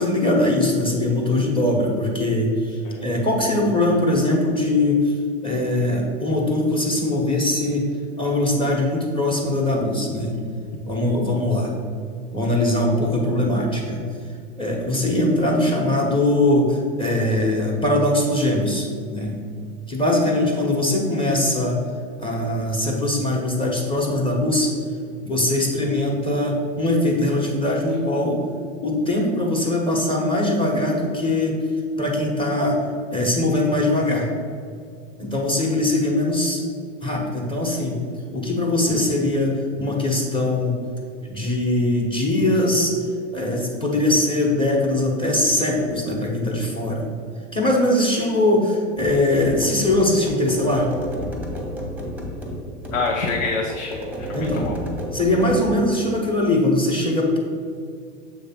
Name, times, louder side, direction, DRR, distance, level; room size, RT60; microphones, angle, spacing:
voice 1, 0.0-5.1 5.4-7.9 8.2-10.4 10.8-11.7 12.3-14.0 14.6-19.4 19.9-21.8 22.2-24.7 25.2-28.4 28.8-31.5 32.0-32.8 33.1-34.3 35.2-36.6 37.0-38.0 38.3-40.8 41.2-42.9 43.3-47.1 47.5-50.9 54.3-54.7 55.1-57.4, left 1 dB, 15° left, -2 dB, 1.2 m, -21 dB
sound 1, 49.0-55.8, equal, 5° right, 1.0 m, -32 dB
voice 2, 52.9-54.8, left 4 dB, 80° left, 0 dB, 0.9 m, -26 dB
7.1 x 3.2 x 5.9 m, 2.2 s
hypercardioid pair, 120°, 38 cm